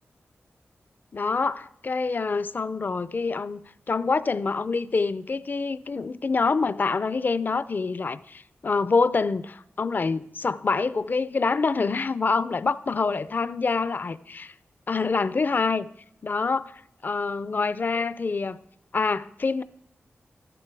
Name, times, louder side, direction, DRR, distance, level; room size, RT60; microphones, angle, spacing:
voice 1, 1.1-3.6 3.9-14.5 14.9-15.9 16.2-18.6 18.9-19.6, left 4 dB, 45° left, 0.5 m, -26 dB
13.5 x 11.0 x 4.6 m
wide cardioid pair, 115°, 4 cm